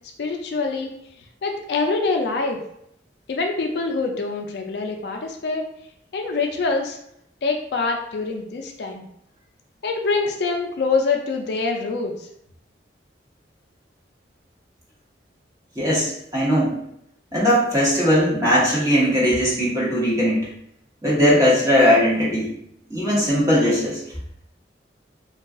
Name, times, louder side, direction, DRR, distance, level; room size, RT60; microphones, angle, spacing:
voice 1, 0.2-0.9 1.4-2.6 3.3-5.6 6.1-7.0 7.4-9.0 9.8-12.1, left 4 dB, 60° left, 3 dB, 0.4 m, -25 dB
voice 2, 15.8-16.7 17.3-20.4 21.0-22.5 22.9-24.0, equal, 15° right, -7 dB, 1.0 m, -19 dB
2.3 x 2.3 x 3.6 m, 0.73 s
head